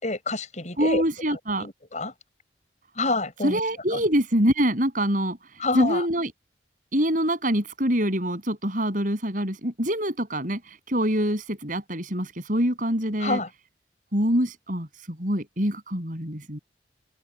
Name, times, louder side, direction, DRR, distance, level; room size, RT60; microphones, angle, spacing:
voice 1, 0.0-1.0 1.3-2.1 3.0-3.6 3.9-4.0 5.6-6.1 13.2-13.5, left 2 dB, 40° left, 7.6 m, -28 dB
voice 2, 0.8-1.7 3.4-5.4 5.7-6.3 6.9-13.4 14.1-16.6, equal, 45° right, 7.8 m, -25 dB
head